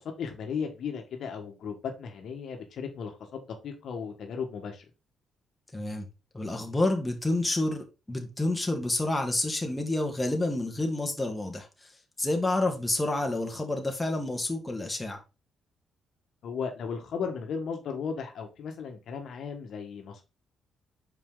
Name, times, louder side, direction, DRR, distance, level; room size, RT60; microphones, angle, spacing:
voice 1, 0.0-4.8 16.4-20.2, left 6 dB, 65° left, 1.4 m, -36 dB
voice 2, 5.7-6.0 6.3-11.9 12.2-15.2, left 2 dB, 15° left, 1.7 m, -29 dB
5.9 x 4.8 x 3.7 m
cardioid pair, 90°, 0 cm